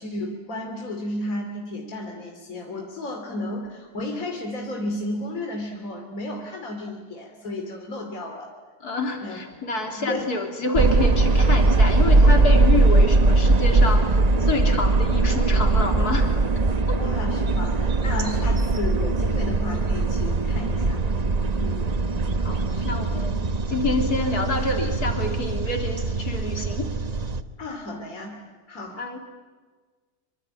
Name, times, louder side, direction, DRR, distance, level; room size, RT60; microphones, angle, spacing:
voice 1, 0.0-8.5 9.2-9.4 9.9-10.3 17.0-21.2 21.6-22.0 22.7-23.0 27.6-28.4 28.7-29.0, left 1 dB, 60° left, 2 dB, 3.2 m, -33 dB
voice 2, 8.8-16.3 16.9-17.0 22.4-23.4 23.7-26.9 29.0-29.2, left 2 dB, 75° left, 3 dB, 3.9 m, -28 dB
sound 1, 10.8-27.4, right 2 dB, 30° right, 0.9 m, -21 dB
26.0 x 25.0 x 8.7 m, 1.4 s
omnidirectional pair, 1.6 m